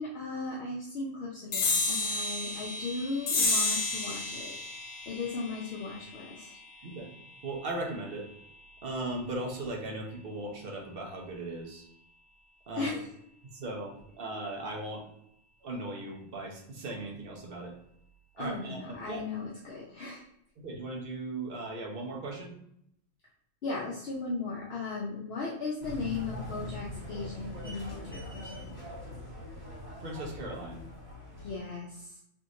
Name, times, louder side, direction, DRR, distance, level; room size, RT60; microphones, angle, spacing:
voice 1, 0.0-4.5 5.1-6.5 12.8-13.1 18.4-20.2 23.6-28.5 31.4-32.1, left 3 dB, 60° left, -4 dB, 0.8 m, -37 dB
sound 1, 1.5-8.4, left 3 dB, 85° left, 1.1 m, -32 dB
voice 2, 7.4-8.3 8.8-11.9 12.7-12.9 13.4-15.1 15.6-17.7 18.3-19.2 20.6-22.5 30.0-30.8, right 2 dB, 50° right, 0 dB, 0.9 m, -38 dB
sound 2, 25.8-31.6, left 1 dB, 30° left, 1.5 m, -42 dB
3.5 x 3.0 x 2.6 m, 0.72 s
omnidirectional pair, 1.3 m